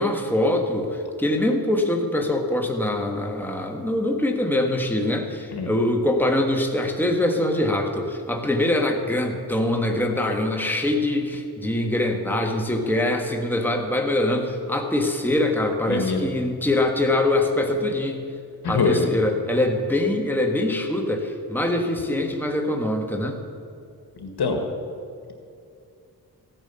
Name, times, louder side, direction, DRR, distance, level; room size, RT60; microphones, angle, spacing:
voice 1, 0.0-18.2 18.7-23.4, left 1 dB, 5° left, 2 dB, 1.6 m, -23 dB
voice 2, 15.9-16.3 18.6-19.1 24.2-24.6, left 4 dB, 75° left, 4 dB, 1.8 m, -24 dB
15.0 x 9.1 x 6.9 m, 2.4 s
wide cardioid pair, 80°, 39 cm